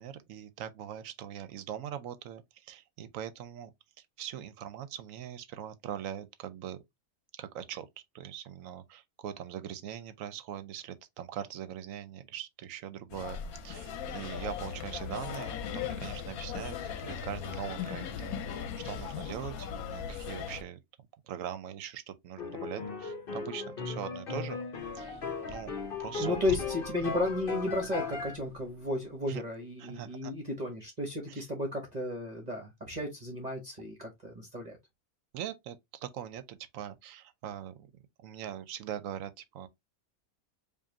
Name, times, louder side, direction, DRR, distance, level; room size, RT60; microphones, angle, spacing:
voice 1, 0.0-3.7 4.2-6.8 7.3-7.9 8.1-20.8 21.3-24.6 24.9-25.7 26.0-26.4 27.0-27.1 29.3-29.4 29.8-30.3 31.3-31.5 35.3-37.9 38.2-39.7, right 10 dB, 70° right, 0.9 m, -41 dB
sound 1, 13.1-20.6, left 8 dB, 80° left, 1.1 m, -38 dB
sound 2, 22.4-28.4, left 5 dB, 45° left, 1.0 m, -37 dB
sound 3, 24.7-29.4, left 2 dB, 10° right, 1.2 m, -48 dB
voice 2, 26.2-34.8, left 2 dB, 35° right, 0.9 m, -33 dB
5.0 x 2.5 x 2.7 m
omnidirectional pair, 1.5 m